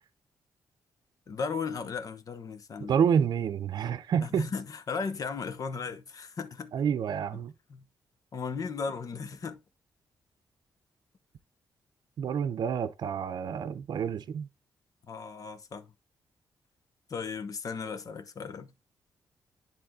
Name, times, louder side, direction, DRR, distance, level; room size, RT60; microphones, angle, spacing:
voice 1, 1.3-3.0 4.2-6.7 7.3-7.4 7.7-7.8 8.3-9.6 15.1-15.9 17.1-18.7, left 5 dB, 50° left, 1.0 m, -36 dB
voice 2, 2.9-4.5 6.7-7.5 12.2-14.5, right 7 dB, 65° right, 0.6 m, -28 dB
10.5 x 3.6 x 3.7 m
cardioid pair, 100°, 8 cm